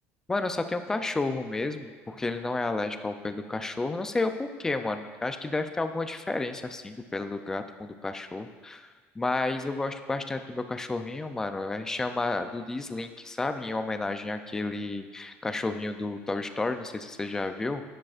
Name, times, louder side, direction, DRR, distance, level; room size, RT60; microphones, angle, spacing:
voice 1, 0.3-8.9 9.2-17.8, left 2 dB, 10° left, 8 dB, 0.4 m, -31 dB
10.5 x 10.0 x 2.5 m, 1.4 s
cardioid pair, 165°, 5 cm